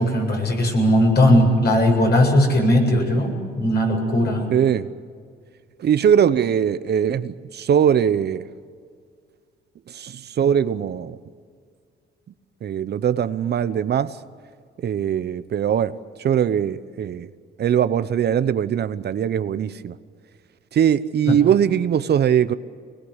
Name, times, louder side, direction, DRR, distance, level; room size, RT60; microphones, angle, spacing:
voice 1, 0.0-4.5 21.3-21.4, left 1 dB, 55° left, 1 dB, 7.8 m, -18 dB
voice 2, 4.5-4.9 5.8-8.4 9.9-11.2 12.6-14.2 14.8-17.3 17.6-20.0 20.7-22.5, right 9 dB, 55° right, 13 dB, 0.9 m, -21 dB
24.0 x 20.5 x 8.2 m, 2.1 s
cardioid pair, 90°, 20 cm